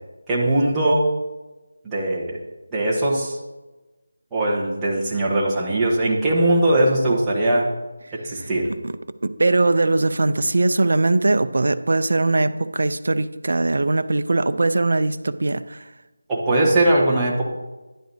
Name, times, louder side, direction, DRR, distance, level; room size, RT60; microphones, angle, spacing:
voice 1, 0.3-1.1 1.8-2.4 2.7-3.4 4.3-7.7 8.1-8.7 16.3-17.4, right 1 dB, 5° right, -7 dB, 1.3 m, -20 dB
voice 2, 9.2-15.8, right 2 dB, 55° right, 11 dB, 0.6 m, -20 dB
12.0 x 10.5 x 2.8 m, 1.1 s
figure-of-eight pair, 175°, 0 cm